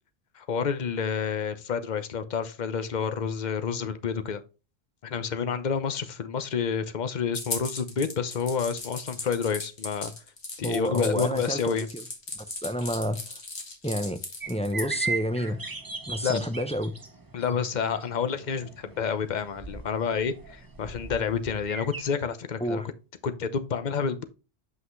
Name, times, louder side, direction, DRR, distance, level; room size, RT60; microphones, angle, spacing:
voice 1, 0.3-4.4 5.0-10.1 10.6-11.9 16.2-16.5 17.3-22.8 23.2-24.2, left 6 dB, 50° left, 0.9 m, -29 dB
sound 1, 7.3-14.8, left 3 dB, 90° left, 2.2 m, -37 dB
voice 2, 10.6-12.0 12.3-13.2 13.8-14.2 14.5-15.6 16.1-16.9 22.6-22.9, equal, 5° left, 0.6 m, -29 dB
sound 2, 14.4-22.0, right 4 dB, 20° right, 0.8 m, -38 dB
8.1 x 5.7 x 3.1 m
omnidirectional pair, 1.1 m